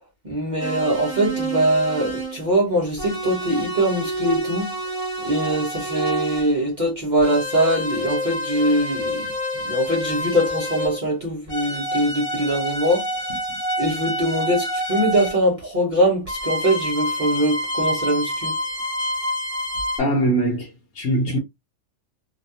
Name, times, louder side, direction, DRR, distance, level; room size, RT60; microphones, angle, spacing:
voice 1, 0.2-4.8 5.2-9.3 9.6-13.1 13.8-18.5, right 1 dB, 40° right, 0.7 m, -22 dB
sound 1, 0.6-2.5 3.0-6.5 7.2-11.1 11.5-15.4 16.3-20.0, equal, 20° right, 1.4 m, -28 dB
voice 2, 20.0-21.4, right 1 dB, 55° left, 0.9 m, -22 dB
2.7 x 2.2 x 2.6 m
omnidirectional pair, 1.5 m